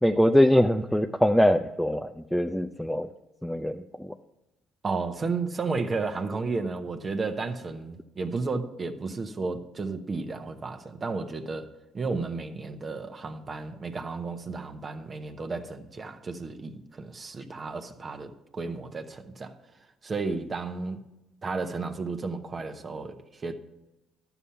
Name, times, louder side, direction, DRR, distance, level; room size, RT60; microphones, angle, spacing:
voice 1, 0.0-3.1 3.4-4.1, equal, ahead, 0.5 m, -23 dB
voice 2, 4.8-11.7 11.9-19.5 20.0-21.0 21.4-23.6, right 4 dB, 35° right, 1.0 m, -33 dB
11.0 x 7.0 x 5.7 m
supercardioid pair, 70°, 0 cm